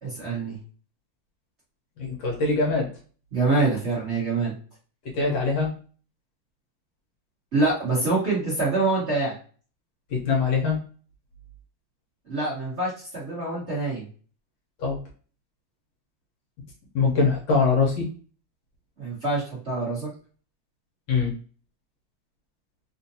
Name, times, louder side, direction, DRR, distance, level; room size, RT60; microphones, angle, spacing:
voice 1, 0.0-0.6 3.3-4.5 7.5-9.4 12.3-14.1 19.0-20.1, right 3 dB, 35° right, -6 dB, 1.5 m, -25 dB
voice 2, 2.0-2.9 5.1-5.7 10.1-10.8 14.8-15.0 16.9-18.1 21.1-21.3, left 4 dB, 65° left, -1 dB, 1.4 m, -23 dB
3.8 x 2.5 x 2.7 m, 0.41 s
omnidirectional pair, 2.3 m